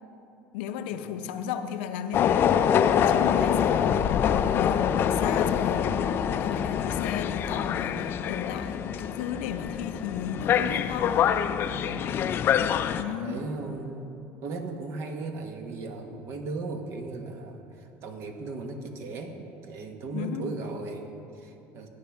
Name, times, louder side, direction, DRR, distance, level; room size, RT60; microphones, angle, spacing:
voice 1, 0.5-11.3 13.0-13.5 20.1-20.5, left 8 dB, 85° left, 8 dB, 0.7 m, -35 dB
sound 1, 2.1-13.0, left 8 dB, 40° left, 0.4 m, -25 dB
voice 2, 11.8-12.2 13.0-14.1 14.4-21.9, right 3 dB, 55° right, 5 dB, 1.3 m, -37 dB
17.0 x 9.7 x 3.5 m, 2.8 s
supercardioid pair, 125°, 6 cm